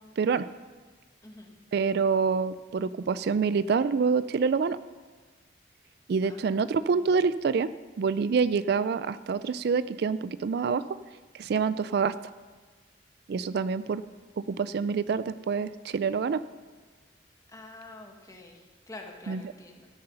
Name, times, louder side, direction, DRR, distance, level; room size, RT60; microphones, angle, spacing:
voice 1, 0.2-0.5 1.7-4.8 6.1-7.7 8.0-10.9 11.3-12.2 13.3-14.0 14.4-16.4 19.3-19.4, right 5 dB, 60° right, 15 dB, 0.3 m, -26 dB
voice 2, 1.2-1.5 6.2-7.1 17.5-19.9, left 2 dB, 20° left, 2 dB, 1.6 m, -47 dB
13.5 x 11.0 x 5.5 m, 1.4 s
head